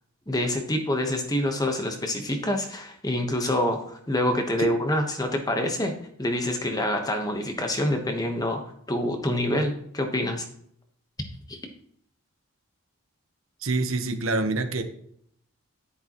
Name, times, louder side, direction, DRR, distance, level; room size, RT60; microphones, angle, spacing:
voice 1, 0.3-8.6 8.9-10.5 11.5-11.6, left 1 dB, 15° left, 4 dB, 1.1 m, -26 dB
voice 2, 13.6-14.8, right 3 dB, 65° right, 6 dB, 1.0 m, -26 dB
11.0 x 9.8 x 3.0 m, 0.67 s
head